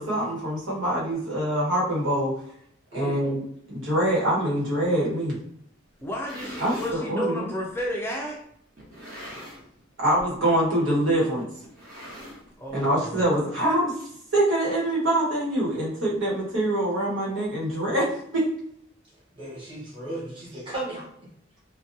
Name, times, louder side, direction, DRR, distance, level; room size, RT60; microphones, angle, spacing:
voice 1, 0.0-2.3 2.9-3.4 3.7-5.3 6.6-7.5 10.0-11.5 12.7-13.9 14.3-18.1 18.3-18.5, right 1 dB, 85° right, -5 dB, 1.2 m, -24 dB
voice 2, 2.9-3.2 19.3-21.0, right 1 dB, 25° right, -6 dB, 1.0 m, -35 dB
voice 3, 6.0-8.4 12.6-13.3, equal, 10° left, -2 dB, 0.3 m, -32 dB
sound 1, 6.0-7.0 7.8-7.9 8.8-9.8 10.1-10.4 10.6-10.7 11.6-12.7, equal, 50° right, 1.1 m, -41 dB
2.5 x 2.2 x 2.6 m, 0.70 s
head